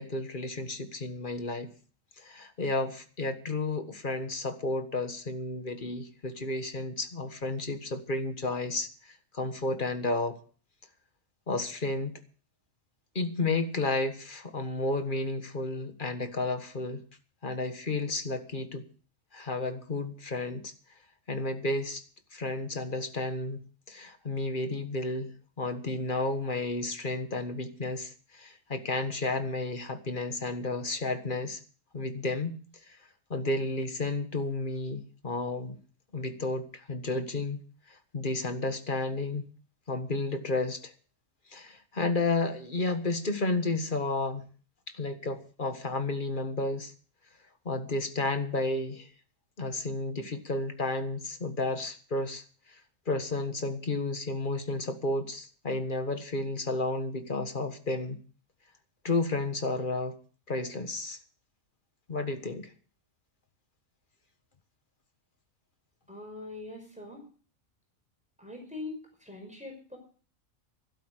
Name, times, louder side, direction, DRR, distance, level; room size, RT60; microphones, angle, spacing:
voice 1, 0.0-1.7 2.2-8.9 9.3-10.4 11.5-12.1 13.1-17.0 17.4-18.8 19.3-20.7 21.3-22.0 22.3-23.6 23.9-31.6 31.9-32.6 33.3-35.8 36.1-37.6 38.1-39.5 39.9-40.9 41.5-44.4 45.0-46.9 47.6-49.1 49.6-52.4 53.1-58.2 59.0-60.1 60.5-61.2 62.1-62.7, left 2 dB, 40° left, 8 dB, 1.7 m, -32 dB
voice 2, 66.1-67.2 68.4-70.0, left 2 dB, 5° right, 2 dB, 5.6 m, -42 dB
12.5 x 12.0 x 6.6 m, 0.41 s
omnidirectional pair, 1.4 m